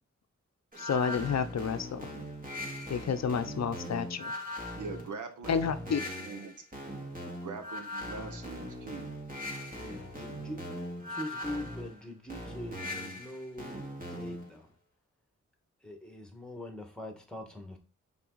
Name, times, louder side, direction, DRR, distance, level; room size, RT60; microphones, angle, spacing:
sound 1, 0.7-14.5, left 1 dB, 30° right, 2.2 m, -40 dB
voice 1, 0.8-2.0 2.9-4.3 5.5-6.0, left 6 dB, 60° left, 0.7 m, -30 dB
voice 2, 4.8-5.5 6.2-6.5 7.4-9.1, right 4 dB, 85° right, 1.1 m, -42 dB
voice 3, 9.7-10.7 11.0-14.7 15.8-17.8, left 1 dB, 5° left, 1.6 m, -43 dB
5.7 x 4.1 x 4.0 m
cardioid pair, 65°, 30 cm